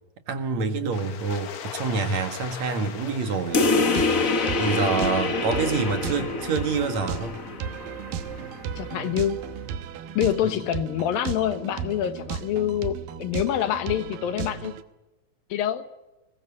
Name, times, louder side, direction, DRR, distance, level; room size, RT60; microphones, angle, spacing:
voice 1, 0.3-3.7 4.6-7.4, right 4 dB, 55° right, 7 dB, 2.8 m, -27 dB
sound 1, 0.9-6.0, left 8 dB, 60° left, 2.6 m, -41 dB
sound 2, 3.5-8.6, left 3 dB, 75° left, 0.7 m, -26 dB
sound 3, 3.5-14.8, right 8 dB, 85° right, 2.9 m, -35 dB
voice 2, 8.8-9.4 10.1-14.7 15.5-15.8, left 10 dB, 90° left, 10 dB, 3.2 m, -26 dB
21.5 x 20.5 x 8.4 m, 1.0 s
omnidirectional pair, 4.0 m